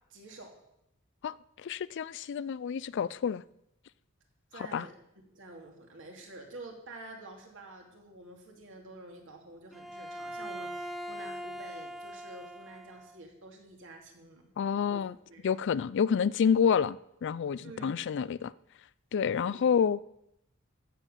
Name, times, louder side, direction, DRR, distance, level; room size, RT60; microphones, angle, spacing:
voice 1, 0.1-0.5 4.5-4.9 5.2-14.5 14.9-15.5 17.6-17.9 19.4-19.6, right 2 dB, 60° right, 2.8 m, -48 dB
voice 2, 1.2-3.4 4.7-4.9 14.6-15.1 15.4-18.5 19.1-20.0, left 7 dB, 55° left, 0.4 m, -28 dB
Bowed string instrument, 9.7-13.2, equal, ahead, 0.7 m, -41 dB
14.5 x 7.5 x 6.8 m
head